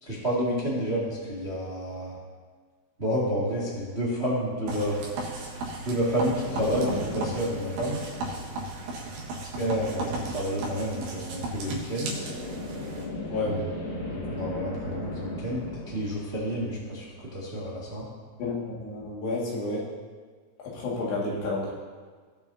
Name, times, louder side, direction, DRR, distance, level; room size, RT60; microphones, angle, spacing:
voice 1, 0.0-2.2 3.0-5.0 5.8-8.0 9.6-12.1 13.5-13.6 14.0-17.1 17.3-18.1, equal, 40° right, -6 dB, 0.9 m, -29 dB
sound 1, 4.7-13.1, right 2 dB, 80° right, 3.9 m, -36 dB
sound 2, 6.4-9.2 12.0-17.4, left 1 dB, 90° left, 5.0 m, -37 dB
voice 2, 18.4-19.9 20.6-21.7, left 2 dB, 70° left, -5 dB, 4.1 m, -30 dB
19.0 x 7.3 x 2.8 m, 1.5 s
omnidirectional pair, 5.1 m